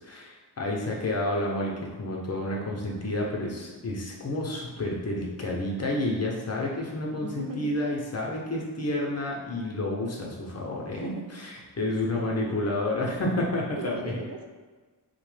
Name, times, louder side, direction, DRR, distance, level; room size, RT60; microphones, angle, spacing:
voice 1, 0.0-1.7 2.0-14.2, left 1 dB, 40° left, -2 dB, 0.6 m, -30 dB
voice 2, 7.2-7.8 10.9-11.3 11.6-11.8 12.1-12.5 13.8-14.5, right 3 dB, 60° right, 3 dB, 0.5 m, -39 dB
2.8 x 2.1 x 3.2 m, 1.4 s
wide cardioid pair, 75°, 41 cm